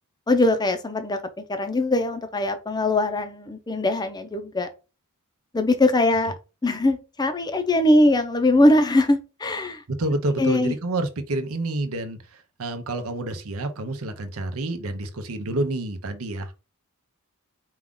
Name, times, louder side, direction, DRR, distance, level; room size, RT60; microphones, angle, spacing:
voice 1, 0.3-1.2 1.5-4.7 5.5-6.3 6.6-9.8 10.4-10.7, left 1 dB, 20° left, 0.6 m, -21 dB
voice 2, 10.0-16.5, right 2 dB, 70° right, 0.7 m, -28 dB
4.7 x 2.4 x 3.7 m
head